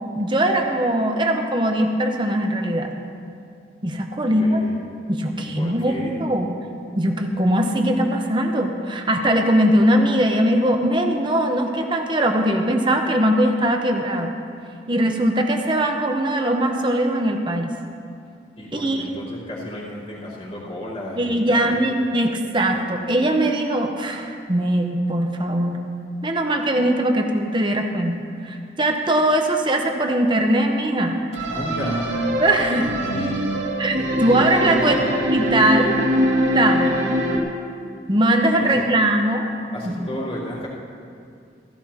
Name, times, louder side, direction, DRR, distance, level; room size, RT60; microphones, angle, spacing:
voice 1, 0.2-2.9 3.8-4.6 5.1-6.5 7.0-14.3 14.9-17.7 18.7-19.1 21.2-25.8 26.2-28.2 28.4-31.2 32.4-32.9 33.8-34.9 35.3-36.0 36.5-37.0 38.1-39.5 39.8-40.1, right 1 dB, 25° right, 3 dB, 0.9 m, -20 dB
voice 2, 4.3-4.8 5.4-6.2 18.6-21.8 31.5-32.2 32.8-33.5 34.7-35.2 38.6-38.8 39.7-40.7, left 1 dB, 35° left, -10 dB, 3.7 m, -33 dB
sound 1, 31.3-37.4, equal, 90° right, 2.3 m, -23 dB
16.0 x 15.5 x 2.9 m, 2.4 s
head